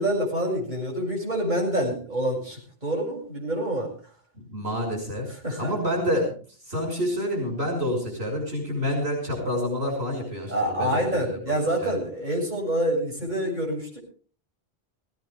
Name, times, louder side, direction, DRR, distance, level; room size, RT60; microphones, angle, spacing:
voice 1, 0.0-3.9 5.3-5.7 10.5-14.0, right 1 dB, 45° right, -2 dB, 7.4 m, -27 dB
voice 2, 4.5-5.3 5.6-6.3 6.7-12.0, equal, 80° right, 1 dB, 6.4 m, -28 dB
18.5 x 17.5 x 3.6 m, 0.41 s
omnidirectional pair, 1.0 m